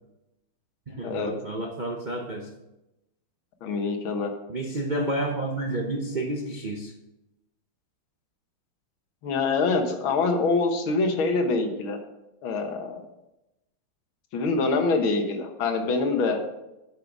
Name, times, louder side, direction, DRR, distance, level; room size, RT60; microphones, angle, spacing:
voice 1, 0.9-2.5 4.5-6.9, right 1 dB, 45° right, 0 dB, 0.6 m, -30 dB
voice 2, 3.6-4.3 9.2-12.0 12.4-13.0 14.3-16.4, left 3 dB, 75° left, 5 dB, 2.0 m, -25 dB
8.5 x 6.8 x 6.0 m, 0.93 s
omnidirectional pair, 2.3 m